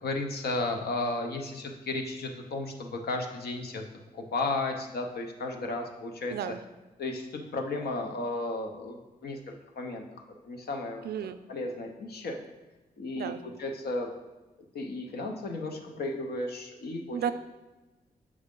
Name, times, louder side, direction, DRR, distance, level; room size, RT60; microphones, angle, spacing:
voice 1, 0.0-3.8 4.1-6.3 7.0-10.0 10.4-11.0 11.5-12.4 13.0-13.3 13.6-14.1 14.7-17.2, left 2 dB, 85° left, 3 dB, 0.8 m, -34 dB
voice 2, 6.3-6.6 11.0-11.4 13.1-13.4 17.1-17.3, right 9 dB, 85° right, 11 dB, 0.4 m, -33 dB
6.3 x 4.8 x 3.7 m, 1.1 s
cardioid pair, 80°, 16 cm